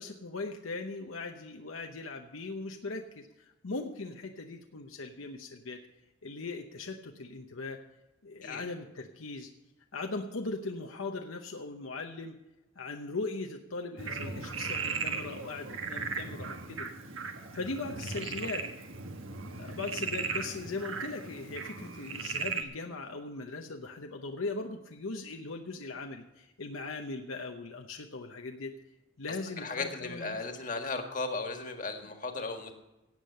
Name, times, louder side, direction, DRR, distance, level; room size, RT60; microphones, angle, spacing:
voice 1, 0.0-5.8 6.2-7.8 8.2-9.5 9.9-12.4 12.8-16.9 17.5-18.7 19.6-28.8 29.2-30.4, left 3 dB, 85° left, 3 dB, 0.9 m, -39 dB
Frog, 14.0-22.6, right 4 dB, 80° right, 1.4 m, -37 dB
voice 2, 29.6-32.7, left 3 dB, 40° left, 4 dB, 1.7 m, -36 dB
17.0 x 8.4 x 5.5 m, 1.0 s
head